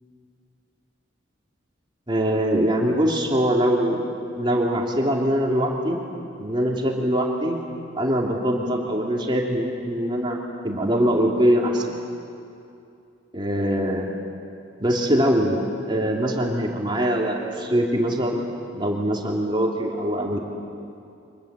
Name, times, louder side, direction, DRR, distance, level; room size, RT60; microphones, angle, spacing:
voice 1, 2.1-4.1 4.3-6.0 6.4-7.6 7.9-11.8 13.3-14.1 14.8-18.5 18.7-20.4, equal, 25° right, -1 dB, 2.8 m, -23 dB
29.5 x 24.5 x 8.1 m, 2.5 s
head